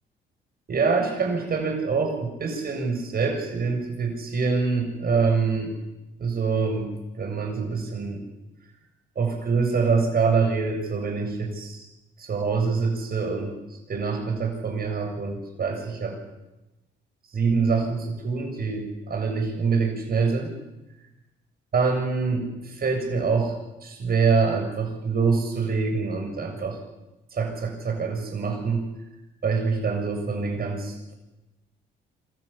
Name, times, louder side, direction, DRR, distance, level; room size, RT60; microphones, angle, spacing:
voice 1, 0.7-5.7 6.2-8.2 9.2-11.9 12.2-13.6 13.9-16.2 17.3-20.5 21.7-23.5 23.8-26.8 27.3-28.9 29.4-31.1, right 4 dB, 50° right, 2 dB, 7.3 m, -25 dB
26.0 x 14.5 x 8.6 m, 1.0 s
cardioid pair, 90°, 20 cm